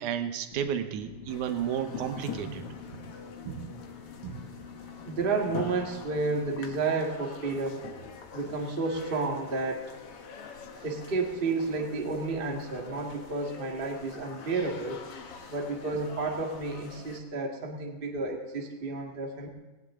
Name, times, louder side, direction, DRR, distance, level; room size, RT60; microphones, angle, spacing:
voice 1, 0.0-3.1 3.5-3.7 4.2-4.4, right 9 dB, 70° right, 8 dB, 2.2 m, -33 dB
sound 1, 0.5-6.9, left 7 dB, 90° left, 2.9 m, -47 dB
sound 2, 1.3-17.2, left 5 dB, 55° left, 1.8 m, -44 dB
voice 2, 5.0-7.8 8.3-9.9 10.8-15.0 15.5-19.5, right 3 dB, 30° right, 0 dB, 1.0 m, -31 dB
18.5 x 17.5 x 3.7 m, 1.1 s
omnidirectional pair, 4.0 m